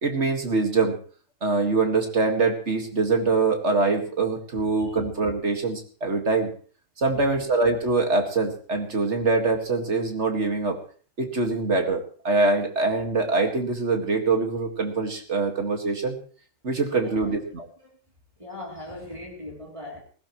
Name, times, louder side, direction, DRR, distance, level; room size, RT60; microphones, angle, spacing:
voice 1, 0.0-1.0 1.4-6.5 7.0-10.8 11.2-16.2 16.6-17.7, right 3 dB, 60° right, 4 dB, 2.3 m, -24 dB
voice 2, 16.9-17.4 17.8-18.0 18.4-20.0, left 1 dB, 25° right, -1 dB, 3.2 m, -40 dB
20.5 x 16.0 x 3.1 m, 0.42 s
omnidirectional pair, 1.3 m